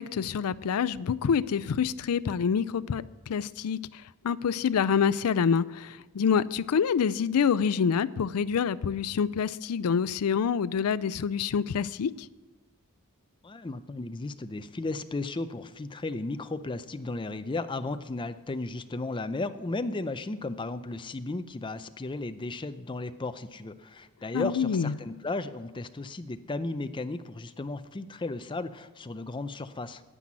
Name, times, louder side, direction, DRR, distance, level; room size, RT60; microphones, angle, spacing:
voice 1, 0.0-3.0 3.3-3.8 4.2-12.1 24.3-24.9, left 7 dB, 85° left, 0.4 m, -26 dB
voice 2, 13.4-30.0, left 2 dB, 20° left, 0.5 m, -35 dB
9.9 x 9.2 x 7.4 m
head